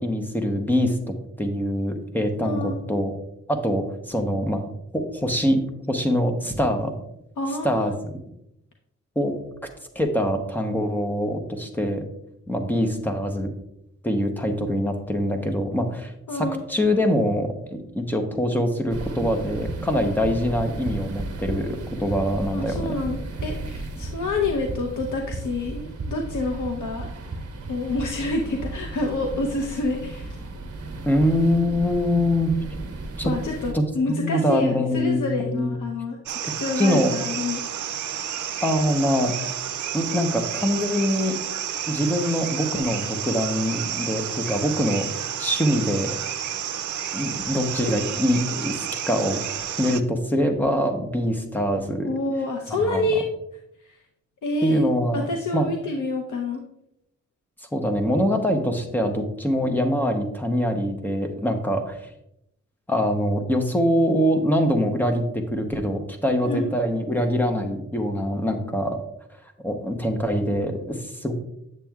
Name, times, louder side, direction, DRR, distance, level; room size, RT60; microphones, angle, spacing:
voice 1, 0.0-3.1 3.5-6.9 7.6-8.2 9.2-9.4 9.9-12.0 12.5-13.5 14.0-22.9 31.1-32.5 33.2-33.3 33.7-35.7 36.8-37.1 38.6-39.3 39.9-41.4 41.9-46.2 47.1-49.4 49.8-52.1 52.7-53.1 54.6-55.3 55.5-55.7 57.7-62.1 62.9-69.0 69.6-71.3, equal, 5° left, 5 dB, 0.7 m, -24 dB
voice 2, 2.4-2.8 7.4-7.9 16.3-16.6 22.5-27.1 27.7-30.4 33.2-37.6 52.0-53.3 53.8-54.0 54.4-54.8 55.1-56.6 66.5-66.7, left 2 dB, 80° left, 2 dB, 0.8 m, -28 dB
sound 1, 18.9-33.7, right 2 dB, 55° right, 0.9 m, -36 dB
Run, 19.4-28.8, right 3 dB, 35° right, 1.5 m, -35 dB
sound 2, 36.3-50.0, right 9 dB, 75° right, 0.5 m, -31 dB
8.8 x 7.4 x 2.3 m, 0.80 s
wide cardioid pair, 180°, 30 cm